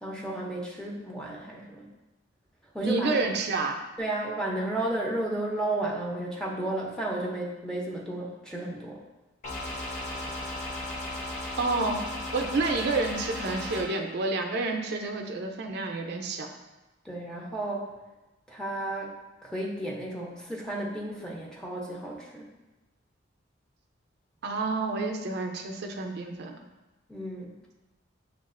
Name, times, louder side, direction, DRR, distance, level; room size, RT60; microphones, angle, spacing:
voice 1, 0.0-1.8 2.7-3.3 4.0-9.0 17.0-17.9 18.5-19.1 19.4-22.4 27.1-27.5, right 1 dB, 5° left, -3 dB, 0.5 m, -33 dB
voice 2, 2.8-3.8 11.6-12.0 12.3-16.5 24.4-26.6, right 3 dB, 55° right, 3 dB, 0.4 m, -29 dB
sound 1, 9.4-13.8, left 1 dB, 35° left, 0.7 m, -35 dB
6.6 x 2.4 x 2.4 m, 1.1 s
head